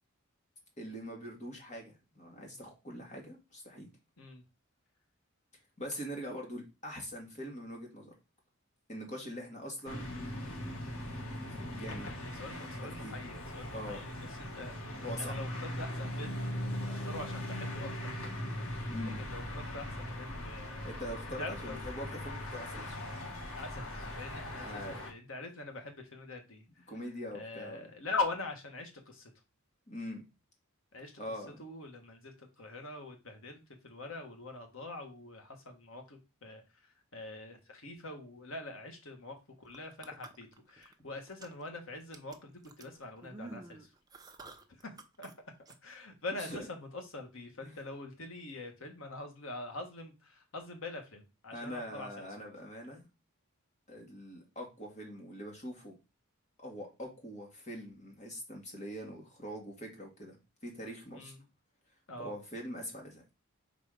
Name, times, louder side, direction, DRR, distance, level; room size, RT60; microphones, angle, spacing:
voice 1, 0.8-3.9 5.8-8.1 8.9-10.1 11.4-12.1 12.9-13.2 13.7-14.0 15.0-15.4 18.9-19.2 20.8-23.0 24.5-25.0 26.9-27.9 29.9-30.2 31.2-31.6 46.3-46.7 47.6-47.8 51.5-53.1 53.9-55.9 56.6-60.4 60.6-61.3 62.2-63.2, equal, 35° left, 0 dB, 2.1 m, -43 dB
sound 1, 9.9-25.1, left 1 dB, 85° left, 1.9 m, -40 dB
voice 2, 12.2-16.4 16.9-18.4 19.2-20.9 21.4-21.8 23.6-26.6 27.3-29.3 30.9-31.1 31.6-36.6 37.1-43.8 45.2-45.3 45.8-52.5 61.2-61.4 62.1-62.3, left 3 dB, 65° left, 4 dB, 1.6 m, -43 dB
sound 2, 39.6-40.9 41.3-41.7 42.1-45.3 45.6-45.7, right 2 dB, 20° right, 0.7 m, -50 dB
5.2 x 4.3 x 5.0 m, 0.27 s
head